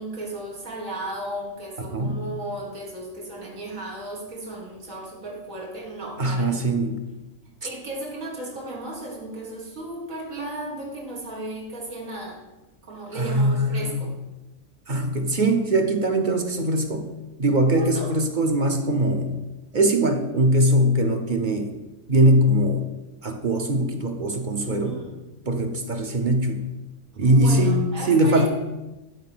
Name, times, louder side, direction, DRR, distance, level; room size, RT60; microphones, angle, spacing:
voice 1, 0.0-6.6 7.6-12.4 12.8-14.2 17.7-18.1 24.7-25.2 27.2-28.5, right 1 dB, 85° right, -2 dB, 2.4 m, -35 dB
voice 2, 1.9-2.2 6.2-7.0 13.1-14.1 14.9-17.1 17.4-19.4 19.7-21.7 22.1-22.9 23.2-25.0 25.5-26.6 27.2-28.5, right 1 dB, 40° right, 5 dB, 0.9 m, -21 dB
11.0 x 4.4 x 6.1 m, 1.1 s
omnidirectional pair, 1.4 m